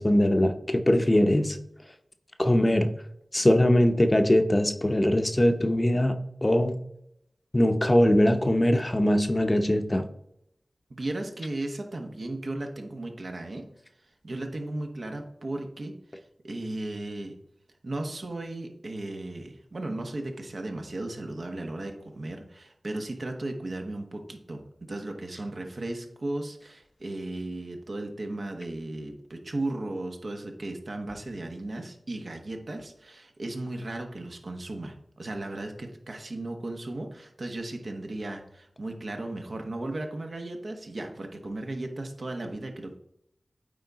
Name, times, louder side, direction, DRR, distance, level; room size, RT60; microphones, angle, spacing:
voice 1, 0.0-1.6 2.4-2.9 3.3-6.8 7.5-10.0, left 1 dB, 30° left, 7 dB, 0.7 m, -22 dB
voice 2, 10.9-13.7 14.2-16.0 16.4-17.4 17.8-43.0, right 2 dB, 65° right, 4 dB, 1.1 m, -35 dB
8.8 x 3.6 x 3.9 m, 0.75 s
cardioid pair, 45°, 0 cm